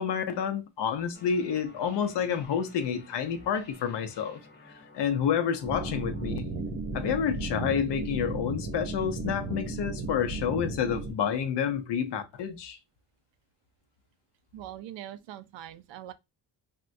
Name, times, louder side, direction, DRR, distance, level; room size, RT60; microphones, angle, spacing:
voice 1, 0.0-4.4 4.9-6.5 6.9-12.8, left 8 dB, 70° left, 0.7 m, -29 dB
sound 1, 1.1-6.3, left 2 dB, 25° left, 0.9 m, -53 dB
sound 2, 5.6-11.1, right 3 dB, 50° right, 0.8 m, -34 dB
voice 2, 14.5-16.1, right 12 dB, 90° right, 0.5 m, -42 dB
3.5 x 2.2 x 2.6 m
cardioid pair, 100°, 43 cm